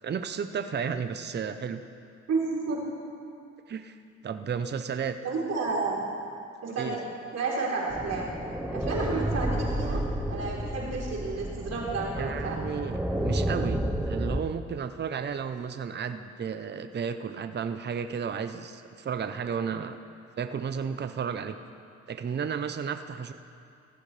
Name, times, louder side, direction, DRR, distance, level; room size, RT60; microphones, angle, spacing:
voice 1, 0.0-1.8 3.7-4.0 4.2-5.2 6.7-7.0 12.1-20.0 20.4-21.6 22.1-23.3, right 6 dB, 35° right, 9 dB, 0.7 m, -33 dB
voice 2, 2.3-2.9 5.2-6.0 6.6-7.0 7.3-8.3 8.7-12.6, right 3 dB, 55° right, -4 dB, 3.8 m, -31 dB
sound 1, 7.9-14.4, right 1 dB, 5° right, 1.0 m, -31 dB
17.5 x 14.5 x 3.3 m, 2.4 s
cardioid pair, 90°, 30 cm